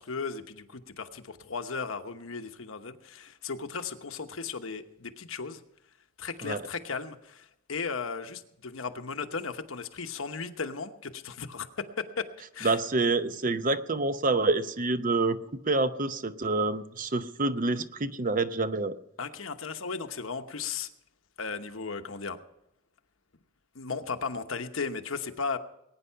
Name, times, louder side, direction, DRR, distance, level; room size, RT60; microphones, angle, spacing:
voice 1, 0.0-5.6 6.2-11.7 12.0-12.3 12.5-12.8 19.2-20.9 21.4-22.4 23.7-25.6, left 5 dB, 80° left, 8 dB, 1.1 m, -36 dB
voice 2, 12.6-15.4 15.7-19.0, right 3 dB, 40° right, 11 dB, 0.7 m, -27 dB
20.0 x 9.7 x 5.7 m, 0.83 s
head